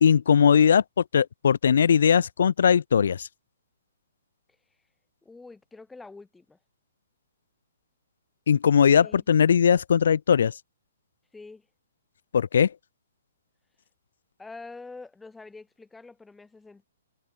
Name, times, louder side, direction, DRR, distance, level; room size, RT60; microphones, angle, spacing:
voice 1, 0.0-3.3 8.5-10.5 12.3-12.7, left 7 dB, 65° left, 0.5 m, -20 dB
voice 2, 5.2-6.6 9.0-9.2 11.3-11.7 14.4-16.9, left 3 dB, 5° left, 2.4 m, -45 dB
hypercardioid pair, 175°, 0 cm